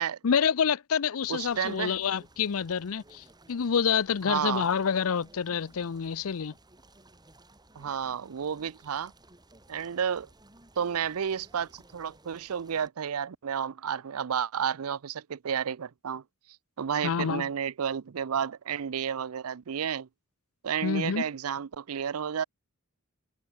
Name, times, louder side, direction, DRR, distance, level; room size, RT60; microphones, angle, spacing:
voice 1, 0.2-6.5 17.0-17.5 20.8-21.2, left 7 dB, 70° left, 0.5 m, -27 dB
sound 1, 1.2-12.9, right 2 dB, 20° right, 6.9 m, -57 dB
voice 2, 1.3-2.0 4.3-4.7 7.8-9.1 9.7-10.3 10.8-16.2 16.8-20.1 20.6-22.4, right 8 dB, 80° right, 0.5 m, -31 dB
head